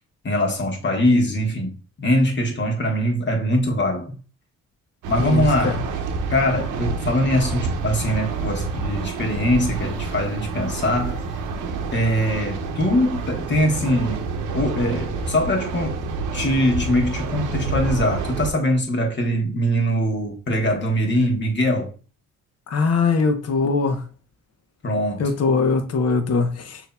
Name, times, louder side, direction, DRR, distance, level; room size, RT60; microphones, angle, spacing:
voice 1, 0.2-4.2 5.1-5.8 6.3-11.4 11.9-14.3 14.5-16.0 16.3-21.9 24.8-25.2, equal, 40° left, 1.3 m, -22 dB
sound 1, 5.0-18.5, right 4 dB, 85° right, 0.7 m, -28 dB
voice 2, 5.2-5.8 22.7-24.0 25.2-26.8, left 4 dB, 55° left, 0.9 m, -21 dB
6.2 x 2.9 x 2.2 m
cardioid pair, 90°, 30 cm